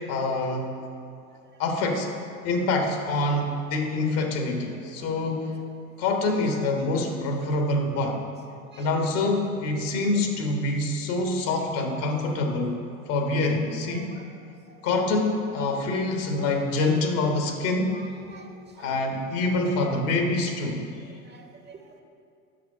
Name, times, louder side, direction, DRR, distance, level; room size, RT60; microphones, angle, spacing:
voice 1, 0.1-0.7 1.6-2.1 2.4-5.5 6.0-8.2 8.8-12.8 13.1-14.1 14.8-18.0 18.8-20.9, left 2 dB, 60° left, 3 dB, 1.5 m, -26 dB
voice 2, 4.8-5.4 8.7-8.9 11.5-11.6 13.4-14.3 14.7-15.1 15.5-15.7 16.4-16.5 17.9-18.9 21.0-22.0, right 4 dB, 25° right, 4 dB, 0.9 m, -49 dB
8.4 x 6.2 x 5.5 m, 2.4 s
hypercardioid pair, 80°, 40 cm